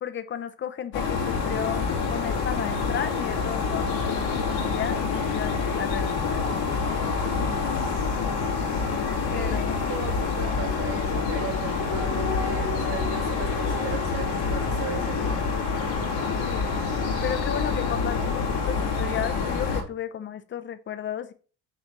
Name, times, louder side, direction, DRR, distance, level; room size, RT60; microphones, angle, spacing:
voice 1, 0.0-6.5 9.3-9.8 16.2-16.7 17.2-21.3, left 9 dB, 30° left, 10 dB, 0.7 m, -34 dB
sound 1, 0.9-19.8, left 4 dB, 85° left, 2.3 m, -27 dB
voice 2, 9.3-9.6 9.9-15.6, right 6 dB, 70° right, 0 dB, 3.6 m, -37 dB
6.7 x 3.4 x 6.0 m, 0.38 s
cardioid pair, 145°, 39 cm